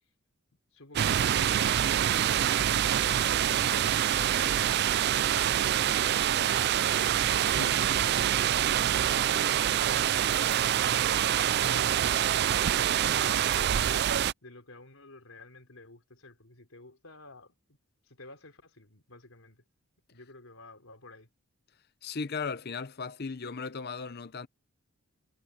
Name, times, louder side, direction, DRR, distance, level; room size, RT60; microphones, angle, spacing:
voice 1, 0.7-2.1 2.7-7.1 7.9-14.0 14.4-17.8 18.0-19.6 20.1-21.3, left 2 dB, 75° left, 4.2 m, -51 dB
sound 1, 1.0-14.3, right 10 dB, 50° right, 0.3 m, -26 dB
voice 2, 22.0-24.5, left 5 dB, 45° left, 0.7 m, -36 dB
head